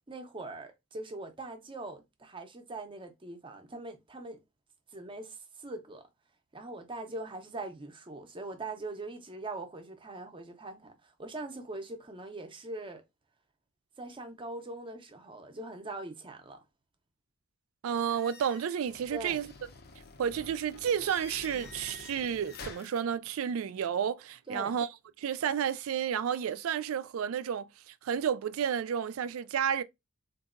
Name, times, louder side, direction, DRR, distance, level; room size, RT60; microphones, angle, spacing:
voice 1, 0.1-4.4 4.9-6.1 6.5-13.0 14.0-16.6 19.1-19.4 24.5-24.8, right 2 dB, 25° right, 0.6 m, -42 dB
voice 2, 17.8-19.5 20.2-24.9 25.2-29.8, right 8 dB, 70° right, 0.3 m, -31 dB
sound 1, 18.1-23.0, left 4 dB, 50° left, 0.6 m, -48 dB
3.9 x 2.6 x 2.4 m
head